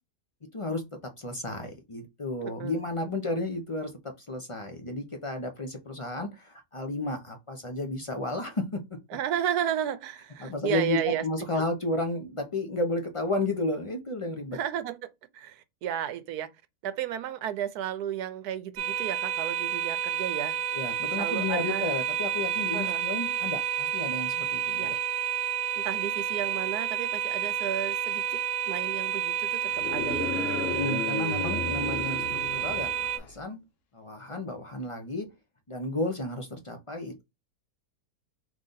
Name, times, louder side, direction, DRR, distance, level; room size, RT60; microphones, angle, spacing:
voice 1, 0.5-0.8 1.2-8.8 10.4-14.6 20.7-25.0 30.6-33.6 33.9-35.3 35.7-37.2, left 2 dB, 40° left, 0.4 m, -32 dB
voice 2, 2.4-2.8 9.1-11.2 14.5-15.0 15.3-16.5 16.8-20.6 21.1-21.9 22.7-23.1 24.8-24.9 25.8-28.4 28.7-30.8, right 10 dB, 80° right, 1.1 m, -33 dB
sound 1, 18.8-33.2, right 10 dB, 55° right, 1.1 m, -30 dB
sound 2, 29.7-33.3, left 5 dB, 60° left, 0.9 m, -34 dB
3.8 x 3.2 x 3.9 m
omnidirectional pair, 1.6 m